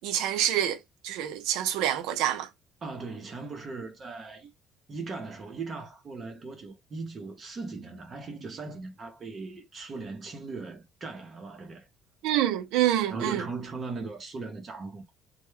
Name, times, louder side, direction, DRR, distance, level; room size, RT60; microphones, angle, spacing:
voice 1, 0.0-0.8 1.0-2.5 12.2-13.4, right 12 dB, 90° right, 0.5 m, -26 dB
voice 2, 2.8-4.5 4.9-11.9 13.1-15.0, right 3 dB, 30° right, 0.6 m, -38 dB
2.1 x 2.1 x 3.1 m
cardioid pair, 145°, 0 cm